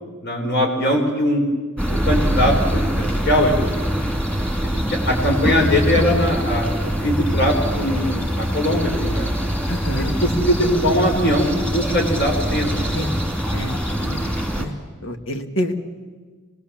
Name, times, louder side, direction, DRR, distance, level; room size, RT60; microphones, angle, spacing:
voice 1, 0.2-1.4 1.9-3.8 4.6-4.7 5.0-9.3 9.9-13.0, equal, 55° left, 2 dB, 4.1 m, -21 dB
sound 1, 1.8-14.6, equal, 5° left, 2.5 m, -23 dB
voice 2, 9.7-10.1 12.9-13.2 13.5-14.7 15.0-15.7, equal, 75° left, 6 dB, 1.9 m, -28 dB
25.5 x 20.0 x 7.3 m, 1.4 s
head